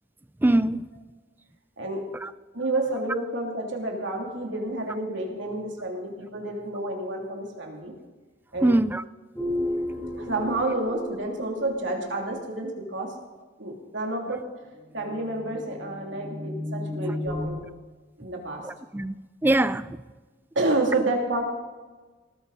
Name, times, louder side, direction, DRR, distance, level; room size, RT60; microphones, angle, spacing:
voice 1, 0.4-0.9 2.2-2.3 8.6-9.0 18.6-19.2 19.4-20.0, right 1 dB, 10° right, 0.3 m, -23 dB
voice 2, 1.8-2.1 2.5-7.9 8.5-8.7 10.2-13.1 13.6-14.4 14.9-17.6 18.2-18.7 20.5-21.4, right 2 dB, 65° right, 3.0 m, -29 dB
sound 1, 9.4-12.5 14.8-17.5, left 1 dB, 5° left, 3.2 m, -34 dB
19.0 x 14.0 x 4.2 m
head